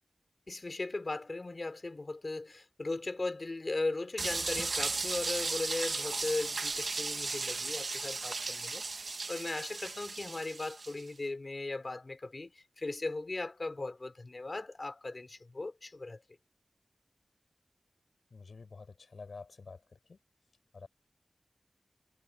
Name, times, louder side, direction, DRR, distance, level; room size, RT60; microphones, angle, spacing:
voice 1, 0.5-16.2, left 2 dB, 50° left, 2.8 m, -38 dB
sound 1, 4.2-11.0, right 3 dB, 70° right, 0.8 m, -36 dB
voice 2, 18.3-20.2 20.7-20.9, left 4 dB, 85° left, 5.3 m, -49 dB
cardioid pair, 50°, 0 cm